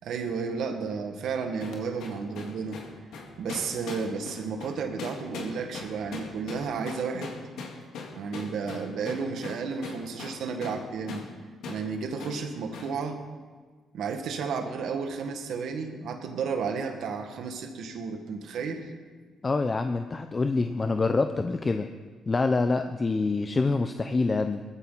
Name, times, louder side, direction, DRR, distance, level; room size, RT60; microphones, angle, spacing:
voice 1, 0.0-2.8 3.4-7.4 8.1-11.3 11.7-13.2 13.9-18.8, right 5 dB, 75° right, 5 dB, 1.8 m, -32 dB
sound 1, 1.6-10.8 11.1-11.3 11.6-11.8 12.2-12.4 12.7-12.9, left 5 dB, 80° left, 2.2 m, -40 dB
voice 2, 19.4-21.9 22.3-24.6, left 3 dB, 30° left, 7 dB, 0.7 m, -26 dB
19.0 x 14.0 x 4.1 m, 1.5 s
cardioid pair, 90°, 0 cm